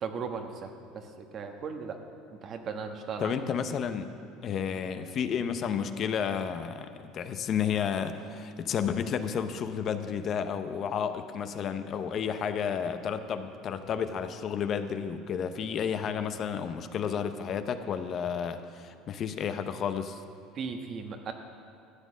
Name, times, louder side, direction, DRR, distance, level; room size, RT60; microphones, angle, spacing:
voice 1, 0.0-2.0 2.3-3.4 20.5-21.3, right 5 dB, 45° right, 5 dB, 1.2 m, -37 dB
voice 2, 3.2-4.2 4.4-20.2, left 7 dB, 45° left, 9 dB, 0.7 m, -31 dB
13.5 x 8.2 x 6.4 m, 2.4 s
supercardioid pair, 95°, 0 cm